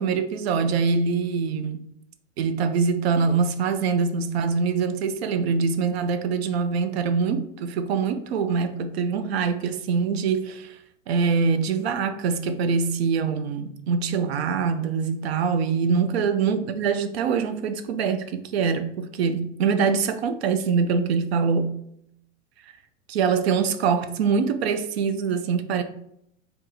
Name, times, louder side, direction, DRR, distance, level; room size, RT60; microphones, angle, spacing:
voice 1, 0.0-1.8 2.4-10.8 11.1-21.7 23.1-25.8, right 5 dB, 55° right, 0.6 m, -24 dB
3.6 x 2.9 x 3.9 m
figure-of-eight pair, 90°, 38 cm